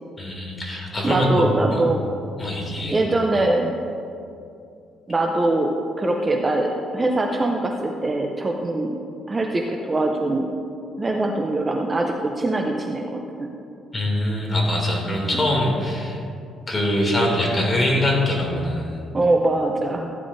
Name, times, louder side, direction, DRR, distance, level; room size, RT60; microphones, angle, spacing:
voice 1, 0.2-1.8 2.4-3.0 13.9-16.2 16.7-19.0, left 1 dB, 20° left, -3 dB, 2.6 m, -23 dB
voice 2, 1.0-2.0 2.9-3.7 5.1-9.0 9.3-10.5 11.0-13.5 19.1-20.1, right 2 dB, 20° right, 2 dB, 0.6 m, -22 dB
15.0 x 9.9 x 2.7 m, 2.6 s
cardioid pair, 130°, 0 cm